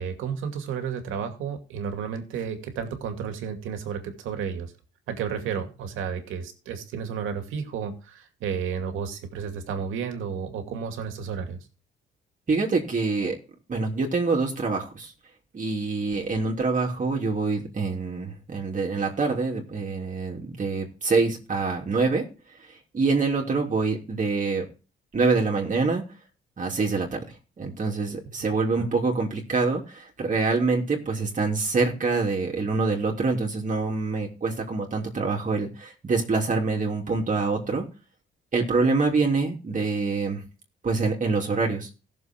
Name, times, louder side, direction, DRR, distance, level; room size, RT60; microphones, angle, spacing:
voice 1, 0.0-4.7 5.1-11.6 28.8-28.9, right 7 dB, 90° right, 6 dB, 2.4 m, -32 dB
voice 2, 12.5-13.4 13.7-15.1 15.5-22.3 22.9-24.6 25.1-26.0 26.6-27.2 27.6-37.8 38.5-40.4 40.8-41.9, right 4 dB, 40° right, 0 dB, 3.0 m, -25 dB
16.5 x 7.0 x 4.5 m, 0.34 s
cardioid pair, 90°, 20 cm